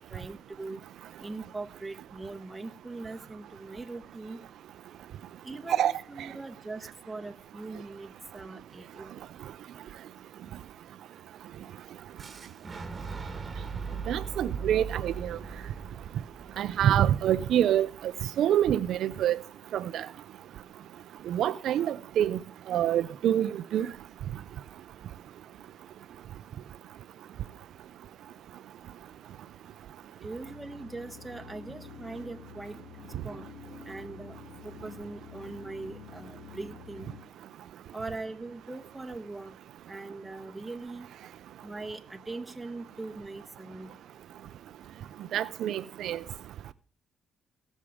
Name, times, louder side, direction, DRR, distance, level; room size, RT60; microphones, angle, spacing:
voice 1, 0.1-0.8 1.2-4.4 5.4-9.1 30.2-32.8 33.2-33.5 33.8-34.4 34.6-37.1 37.9-39.5 39.9-41.1 41.6-44.0, right 3 dB, 15° right, 1.3 m, -41 dB
Boom, 12.2-18.1, right 5 dB, 30° right, 1.7 m, -40 dB
voice 2, 14.1-15.4 16.6-17.9 18.4-19.4 19.7-20.1 21.3-22.4 22.7-23.9 45.3-46.2, right 11 dB, 75° right, 0.5 m, -26 dB
sound 1, 30.4-37.2, left 5 dB, 40° left, 2.0 m, -48 dB
17.5 x 7.3 x 4.9 m
cardioid pair, 90°, 0 cm